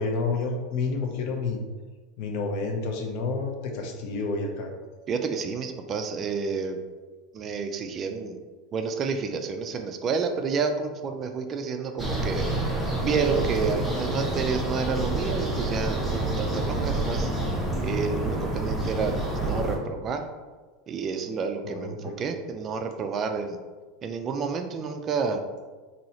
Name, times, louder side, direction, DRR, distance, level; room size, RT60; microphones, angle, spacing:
voice 1, 0.0-1.6 2.2-4.7 21.6-22.2, left 3 dB, 60° left, 3 dB, 0.6 m, -29 dB
voice 2, 5.1-6.8 7.3-8.4 8.7-12.4 13.0-17.3 17.8-20.2 20.9-23.6 24.0-25.4, right 5 dB, 30° right, 6 dB, 0.3 m, -29 dB
sound 1, 12.0-19.8, right 2 dB, 5° right, 0.8 m, -28 dB
2.7 x 2.7 x 4.2 m, 1.3 s
supercardioid pair, 140°, 0 cm